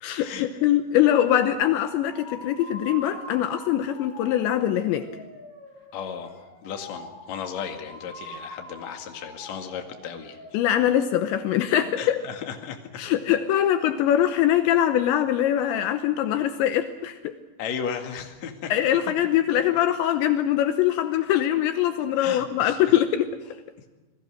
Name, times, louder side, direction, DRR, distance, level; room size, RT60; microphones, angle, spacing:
voice 1, 0.0-5.1 10.5-12.2 13.0-17.3 18.7-23.3, left 11 dB, 75° left, 8 dB, 3.0 m, -23 dB
sound 1, 1.6-10.5, left 1 dB, 15° left, 7.0 m, -43 dB
voice 2, 5.9-10.4 12.0-12.8 17.6-18.7 22.2-22.9, left 7 dB, 45° left, 4 dB, 2.6 m, -35 dB
29.0 x 20.0 x 6.4 m, 1.2 s
omnidirectional pair, 5.6 m